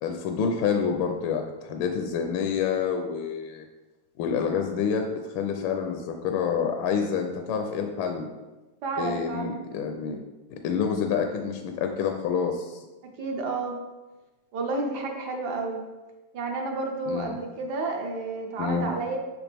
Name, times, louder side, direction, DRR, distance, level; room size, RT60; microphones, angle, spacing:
voice 1, 0.0-3.6 4.2-5.1 5.3-8.3 9.0-10.2 10.5-12.8 17.1-17.4 18.6-18.9, left 6 dB, 75° left, 4 dB, 1.2 m, -28 dB
voice 2, 8.8-9.6 13.2-13.7 14.5-15.8 16.3-19.2, right 3 dB, 65° right, 2 dB, 1.1 m, -30 dB
6.4 x 5.9 x 3.4 m, 1.2 s
omnidirectional pair, 2.4 m